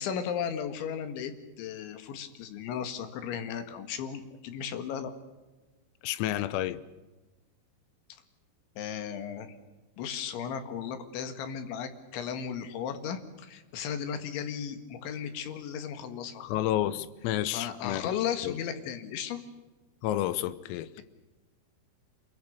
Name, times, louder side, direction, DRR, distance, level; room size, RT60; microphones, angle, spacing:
voice 1, 0.0-5.1 8.8-9.6 10.0-16.5 17.5-19.4 21.0-21.1, left 8 dB, 65° left, 3.9 m, -35 dB
voice 2, 6.0-6.8 16.4-18.1 18.4-18.6 20.0-21.0, left 13 dB, 85° left, 3.6 m, -30 dB
27.0 x 22.5 x 6.7 m
omnidirectional pair, 6.0 m